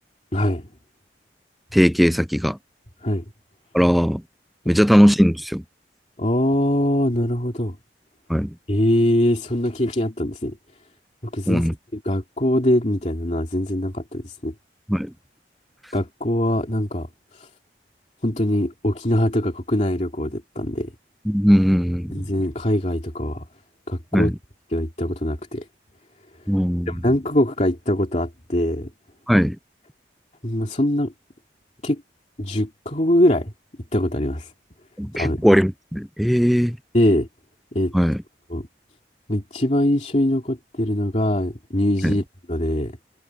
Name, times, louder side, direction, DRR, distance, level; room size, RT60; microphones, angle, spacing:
voice 1, 0.3-0.7 3.0-3.2 6.2-7.8 8.7-10.6 11.3-14.5 15.9-17.1 17.3-17.5 18.2-20.9 22.1-23.4 23.9-24.3 24.7-25.6 26.9-28.9 30.4-31.1 31.8-32.0 32.4-33.5 33.9-34.5 35.1-35.5 36.9-37.3 37.7-37.9 38.5-38.7 39.3-42.9, left 1 dB, 40° left, 2.7 m, -22 dB
voice 2, 1.7-2.6 3.7-4.2 4.7-5.6 8.3-8.5 11.5-11.7 14.9-15.1 21.3-22.2 24.1-24.3 26.5-26.9 29.3-29.6 35.0-36.8 37.9-38.2 42.0-42.2, equal, ahead, 0.3 m, -18 dB
head